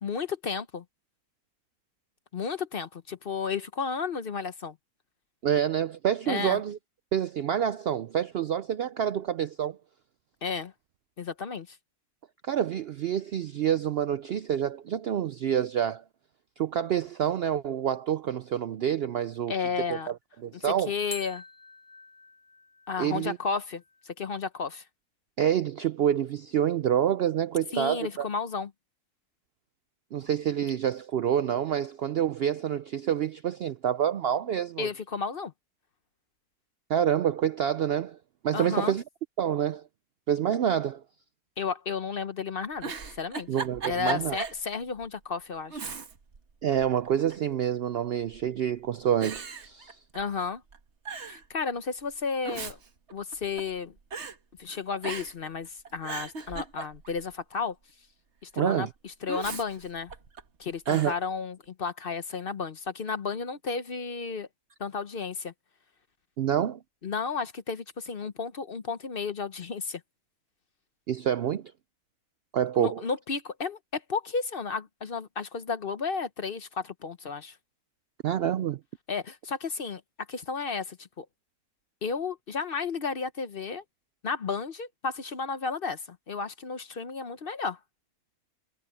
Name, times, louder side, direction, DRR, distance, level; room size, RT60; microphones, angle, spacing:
voice 1, 0.0-0.8 2.3-4.8 6.3-6.6 10.4-10.7 11.2-11.8 19.5-20.1 20.9-21.4 22.9-24.8 27.7-28.7 34.8-35.5 38.5-38.9 41.6-43.5 43.8-45.8 50.1-50.6 51.2-52.8 53.1-53.9 54.6-57.7 58.4-60.1 60.6-64.5 64.8-65.5 67.0-70.0 72.8-77.6 79.1-80.0 80.3-81.2 82.0-83.8 84.2-87.8, left 5 dB, 45° left, 0.8 m, -33 dB
voice 2, 5.4-6.8 7.1-9.8 12.4-16.0 16.6-19.5 19.9-20.2 20.4-20.9 23.0-23.4 25.4-28.3 30.1-34.9 36.9-38.2 38.4-39.0 39.4-39.8 40.3-41.0 43.5-44.4 46.6-50.0 58.6-58.9 60.9-61.1 66.4-66.8 71.1-71.6 72.5-73.0 78.2-78.8, right 9 dB, 90° right, 0.5 m, -27 dB
sound 1, 13.1-14.1 21.1-24.1, left 2 dB, 30° left, 4.3 m, -48 dB
Giggle, 42.6-44.6 45.0-45.1 45.7-46.4 46.7-47.5 48.3-48.7 49.2-50.4 50.7-50.8 51.0-51.4 52.2-53.8 54.1-54.4 55.0-55.5 55.8-57.2 59.3-60.4 60.8-61.2, right 5 dB, 50° right, 1.6 m, -37 dB
omnidirectional pair, 1.6 m